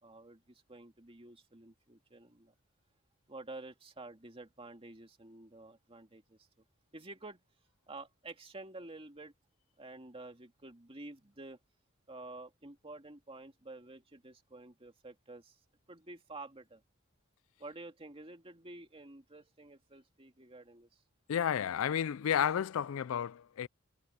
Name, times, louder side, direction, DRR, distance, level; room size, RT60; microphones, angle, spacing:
voice 1, 0.0-2.5 3.3-6.5 6.9-7.4 7.9-9.3 9.8-11.6 12.1-15.6 15.9-16.8 17.6-20.9, right 2 dB, 25° right, 2.3 m, -50 dB
voice 2, 21.3-23.7, left 8 dB, 70° left, 0.4 m, -31 dB
head